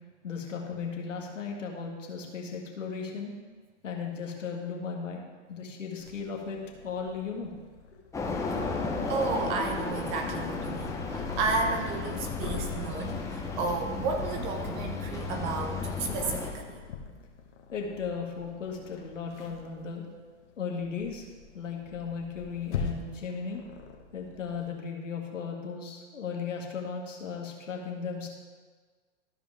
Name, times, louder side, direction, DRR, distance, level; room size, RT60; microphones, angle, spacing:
voice 1, 0.2-3.3 3.8-6.6 6.8-7.5 17.7-20.0 20.6-21.3 21.6-23.6 24.1-28.3, left 5 dB, 90° left, 0 dB, 1.8 m, -36 dB
Purr, 6.0-24.7, left 5 dB, 65° left, 1.4 m, -43 dB
sound 1, 8.1-16.5, left 4 dB, 10° left, 0.8 m, -34 dB
voice 2, 9.1-16.8, right 4 dB, 15° right, 5 dB, 0.3 m, -32 dB
13.0 x 5.2 x 3.4 m, 1.4 s
hypercardioid pair, 125°, 37 cm